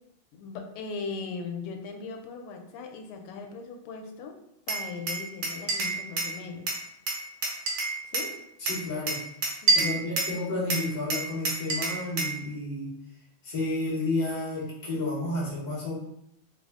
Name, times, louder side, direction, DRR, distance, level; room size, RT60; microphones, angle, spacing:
voice 1, 0.3-4.4 4.7-6.7 8.1-8.3 9.6-10.0, left 4 dB, 85° left, 3 dB, 1.5 m, -38 dB
Glass, 4.7-6.4 6.7-8.3 8.7-10.4 10.7-12.4, right 3 dB, 65° right, 1.3 m, -28 dB
voice 2, 8.6-9.2 9.7-12.9 13.4-16.0, left 2 dB, 30° left, -7 dB, 0.8 m, -31 dB
3.6 x 2.0 x 3.5 m, 0.77 s
omnidirectional pair, 2.4 m